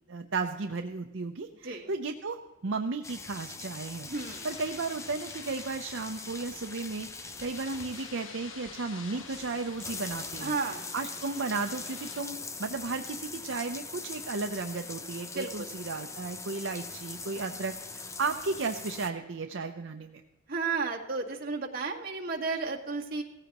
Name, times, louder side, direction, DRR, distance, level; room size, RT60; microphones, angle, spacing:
voice 1, 0.1-4.1 4.4-10.5 10.9-20.2, right 3 dB, 70° right, 5 dB, 0.7 m, -34 dB
sound 1, 3.0-19.1, left 4 dB, 15° left, 0.6 m, -42 dB
sound 2, 4.1-12.2, left 5 dB, 80° left, 1.4 m, -49 dB
voice 2, 4.1-4.5 10.4-10.8 15.3-15.7 20.5-23.2, right 4 dB, 50° right, 0 dB, 1.8 m, -33 dB
17.0 x 14.5 x 3.0 m, 1.1 s
head